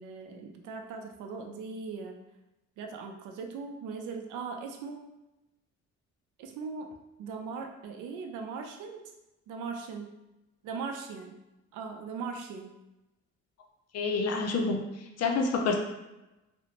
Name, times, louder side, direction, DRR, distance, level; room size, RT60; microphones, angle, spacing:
voice 1, 0.0-2.2 2.8-5.1 6.4-9.0 9.5-10.1 10.6-11.4 11.7-12.7, right 5 dB, 85° right, 3 dB, 0.5 m, -39 dB
voice 2, 13.9-14.8 15.2-15.8, left 4 dB, 55° left, 3 dB, 0.5 m, -27 dB
2.5 x 2.1 x 2.9 m, 0.97 s
cardioid pair, 90°, 30 cm